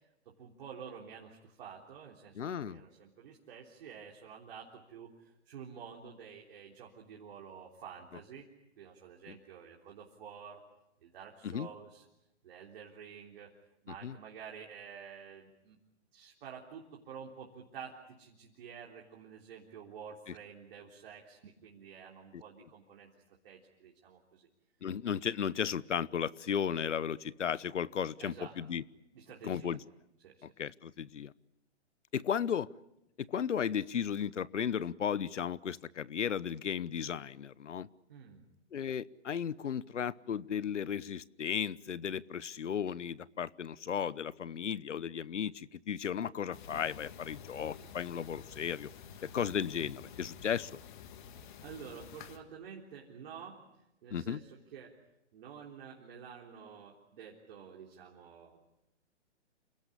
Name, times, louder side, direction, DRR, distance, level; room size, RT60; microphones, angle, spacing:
voice 1, 0.4-8.5 8.8-10.6 11.0-12.0 12.4-13.5 13.8-15.8 16.1-24.5 28.2-28.6 29.1-29.8 30.2-30.5 38.1-38.4 49.1-49.4 51.4-53.6 54.0-55.0 55.3-58.6, right 7 dB, 50° right, -2 dB, 3.7 m, -50 dB
voice 2, 2.4-2.8 11.4-11.7 14.0-14.2 22.3-22.4 24.8-28.8 29.4-29.8 30.4-31.3 32.1-32.7 33.2-37.9 38.7-48.9 49.2-50.7 54.1-54.4, left 8 dB, 85° left, 20 dB, 1.0 m, -35 dB
sound 1, 46.5-52.4, left 7 dB, 45° left, 2.1 m, -50 dB
28.5 x 17.5 x 10.0 m, 0.87 s
hypercardioid pair, 145°, 36 cm